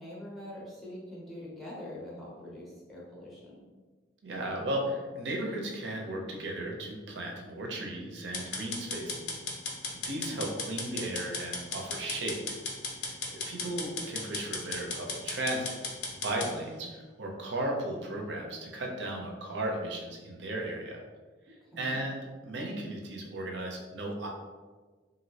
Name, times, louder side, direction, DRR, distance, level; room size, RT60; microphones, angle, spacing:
voice 1, 0.0-3.6 9.0-9.5 10.2-10.5 16.4-16.9 21.5-22.0, left 1 dB, ahead, -6 dB, 0.6 m, -45 dB
voice 2, 4.2-9.2 9.9-12.5 13.0-15.8 16.1-21.0 21.8-24.3, right 1 dB, 75° right, 0 dB, 0.6 m, -35 dB
sound 1, 8.3-16.5, left 4 dB, 70° left, 0.6 m, -36 dB
3.0 x 2.6 x 2.8 m, 1.4 s
head